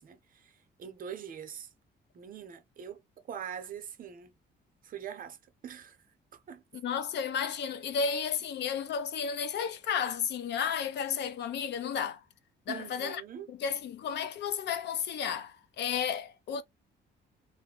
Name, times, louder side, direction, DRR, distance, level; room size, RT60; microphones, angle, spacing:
voice 1, 0.0-1.7 2.1-3.0 3.3-4.3 4.8-5.4 5.6-6.0 6.3-6.6 12.7-13.5, right 8 dB, 45° right, 0.7 m, -43 dB
voice 2, 6.7-12.2 12.7-13.2 13.5-16.6, left 7 dB, 65° left, 0.5 m, -33 dB
2.5 x 2.2 x 3.7 m
cardioid pair, 145°, 19 cm